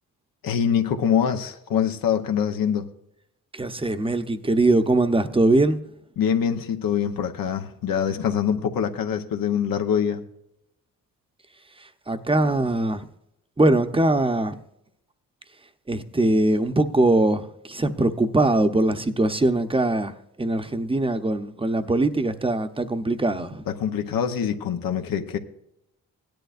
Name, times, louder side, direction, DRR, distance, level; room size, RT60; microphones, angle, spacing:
voice 1, 0.4-2.9 6.2-10.2 23.7-25.4, left 8 dB, 75° left, 0.9 m, -24 dB
voice 2, 3.5-5.8 12.1-13.0 13.6-14.6 15.9-20.1 20.4-23.6, right 2 dB, 15° right, 0.8 m, -21 dB
16.5 x 10.5 x 2.5 m
cardioid pair, 60°, 35 cm